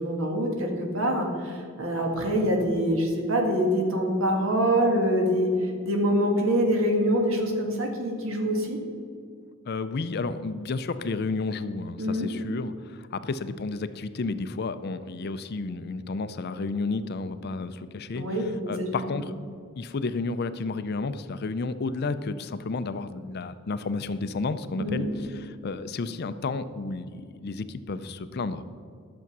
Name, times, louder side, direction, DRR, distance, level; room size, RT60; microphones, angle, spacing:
voice 1, 0.0-8.8 12.0-12.3 18.1-18.9 24.8-25.0, equal, 60° right, 2 dB, 1.7 m, -25 dB
voice 2, 9.7-18.4 18.7-19.3 19.8-28.7, left 3 dB, 45° left, 12 dB, 0.4 m, -32 dB
11.0 x 7.0 x 6.0 m, 2.2 s
head